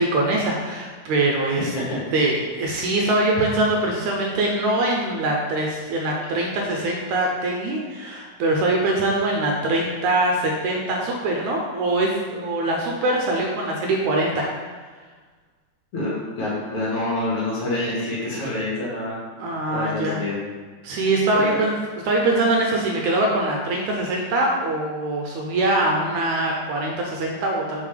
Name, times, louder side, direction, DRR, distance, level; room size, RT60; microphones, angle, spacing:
voice 1, 0.0-1.7 2.1-14.5 19.4-20.2 20.8-21.7 22.0-27.9, right 2 dB, 80° right, 0 dB, 1.9 m, -23 dB
voice 2, 1.7-2.0 15.9-19.2 19.7-20.4 21.3-21.6, left 1 dB, 50° left, -7 dB, 2.2 m, -27 dB
7.3 x 4.4 x 3.3 m, 1.4 s
omnidirectional pair, 3.8 m